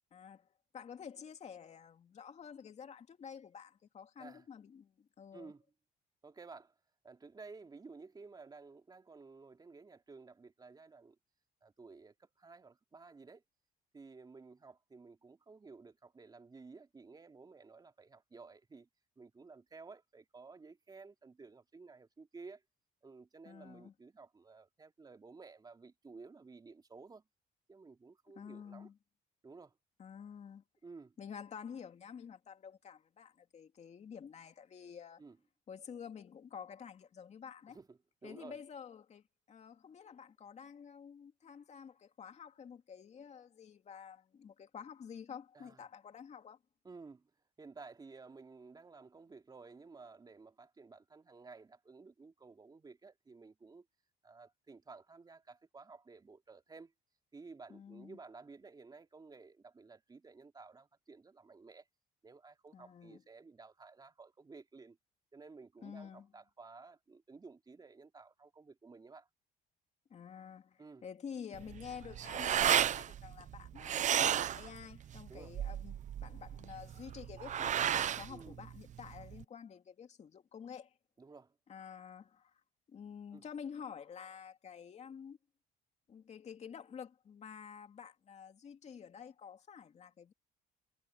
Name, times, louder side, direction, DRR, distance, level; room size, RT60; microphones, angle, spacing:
voice 1, 0.1-0.5 0.7-5.5 23.4-23.9 28.3-29.0 30.0-30.6 31.2-35.2 35.7-37.8 38.2-46.6 57.7-58.2 62.7-63.2 65.8-66.3 70.1-80.9 81.7-82.6 82.9-85.4 86.1-90.3, left 7 dB, 40° left, 2.6 m, -50 dB
voice 2, 5.3-5.6 6.2-6.7 7.0-11.2 11.6-13.4 13.9-18.9 19.2-22.6 23.0-27.2 27.7-28.9 29.4-29.8 30.8-31.2 35.2-35.4 37.7-38.6 45.5-45.8 46.8-47.3 47.6-53.9 54.2-56.9 57.3-61.9 62.2-65.0 65.3-69.3 70.8-71.0 75.3-75.6 78.3-78.6 81.2-81.6 83.3-83.5, right 4 dB, 25° right, 3.5 m, -54 dB
sound 1, 71.5-79.4, right 10 dB, 45° right, 0.7 m, -34 dB
cardioid pair, 110°, 17 cm